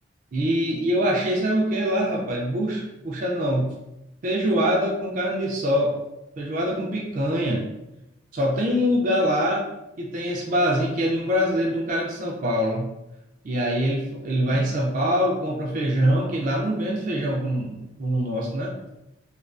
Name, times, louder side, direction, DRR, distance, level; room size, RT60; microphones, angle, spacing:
voice 1, 0.3-3.7 4.2-5.9 6.4-7.7 8.3-9.7 10.0-12.9 13.4-18.8, equal, 40° right, -2 dB, 0.3 m, -24 dB
2.3 x 2.2 x 2.4 m, 0.90 s
head